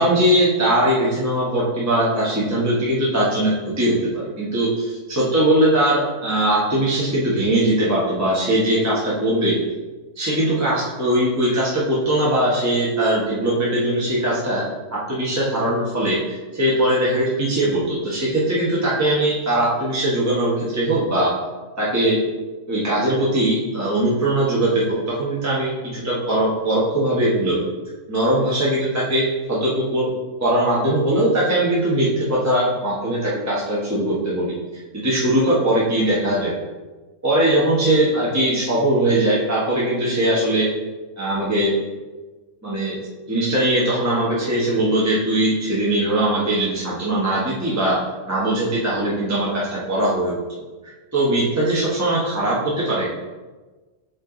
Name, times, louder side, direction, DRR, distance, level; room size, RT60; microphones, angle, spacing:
voice 1, 0.0-9.6 10.1-14.6 14.9-21.3 21.8-22.2 22.7-27.6 28.1-30.1 30.4-34.5 34.9-36.5 37.2-40.7 41.2-41.8 42.6-43.0 43.3-48.0 48.3-50.4 50.8-53.1, right 1 dB, 15° right, -7 dB, 1.1 m, -20 dB
7.4 x 3.3 x 3.8 m, 1.3 s
omnidirectional pair, 1.5 m